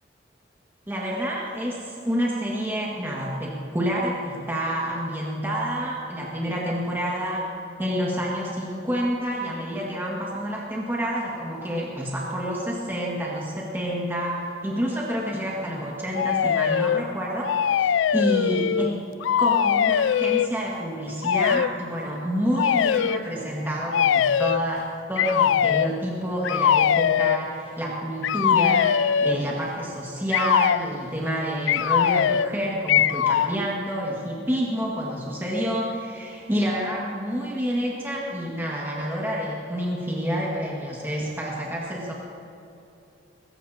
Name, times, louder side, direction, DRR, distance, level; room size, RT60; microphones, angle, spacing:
voice 1, 0.9-7.5 7.8-18.9 19.4-42.1, equal, 10° right, -4 dB, 1.8 m, -28 dB
sound 1, 16.1-17.0 17.4-18.9 19.2-20.5 21.2-21.7 22.5-23.2 23.9-24.6 25.2-25.9 26.4-27.4 28.2-29.4 30.3-30.8 31.7-32.5 32.9-33.5, left 8 dB, 80° left, 0.3 m, -21 dB
21.5 x 17.0 x 2.8 m, 2.9 s
head